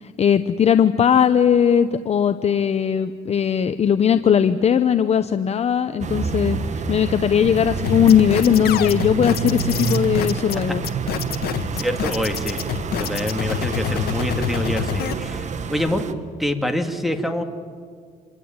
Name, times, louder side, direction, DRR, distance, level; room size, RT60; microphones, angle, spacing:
voice 1, 0.0-10.8, left 8 dB, 40° left, 10 dB, 0.9 m, -18 dB
sound 1, 6.0-16.1, right 6 dB, 45° right, 1.5 m, -28 dB
sound 2, 7.8-15.1, left 9 dB, 65° left, 1.4 m, -27 dB
voice 2, 11.7-12.6 12.9-16.1 16.4-17.4, left 1 dB, ahead, 6 dB, 2.4 m, -25 dB
27.0 x 23.0 x 8.9 m, 2.1 s
cardioid pair, 110°, 17 cm